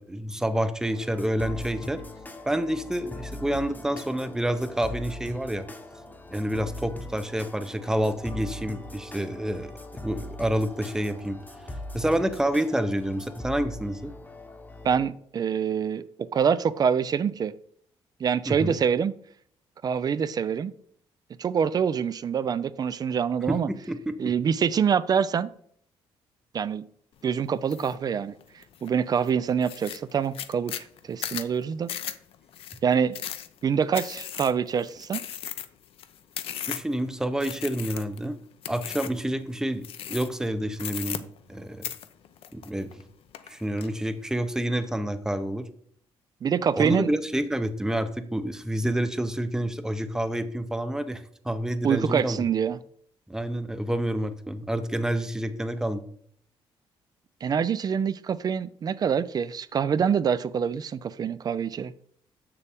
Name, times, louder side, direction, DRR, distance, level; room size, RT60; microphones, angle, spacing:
voice 1, 0.0-2.0 2.5-5.7 6.3-9.7 10.0-11.4 11.9-14.1 18.5-18.8 23.5-24.3 36.7-38.4 38.7-41.2 41.5-41.8 42.5-42.9 43.5-45.6 46.7-52.4 53.3-56.0, right 1 dB, 5° right, 0.6 m, -28 dB
sound 1, 0.8-15.1, left 1 dB, 15° left, 0.9 m, -41 dB
voice 2, 14.8-17.5 18.2-19.1 19.8-20.7 21.4-23.7 24.2-25.5 26.5-26.8 27.2-28.3 28.8-31.9 32.8-33.2 33.6-35.2 46.4-47.1 51.8-52.8 57.4-61.9, right 7 dB, 40° right, 0.4 m, -25 dB
sound 2, 27.7-28.0 28.4-28.9 29.3-29.4 29.6-37.0 37.4-38.3 38.6-39.2 39.8-40.5 40.8-41.6 41.8-43.0 43.3-43.9, left 10 dB, 70° left, 0.6 m, -36 dB
6.9 x 6.7 x 3.5 m
cardioid pair, 110°, 10 cm